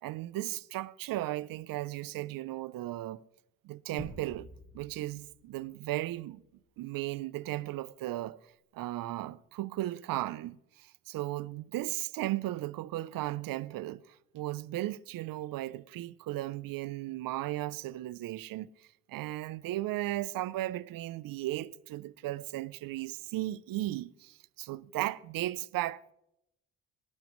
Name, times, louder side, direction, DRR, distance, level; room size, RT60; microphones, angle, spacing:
voice 1, 0.0-3.2 3.6-4.5 4.7-6.4 6.8-8.4 8.7-14.0 14.3-18.7 19.1-26.1, right 16 dB, 75° right, 0.5 m, -36 dB
sound 1, 4.0-5.9, left 1 dB, 65° left, 5.7 m, -49 dB
18.5 x 12.0 x 3.1 m
cardioid pair, 115°, 34 cm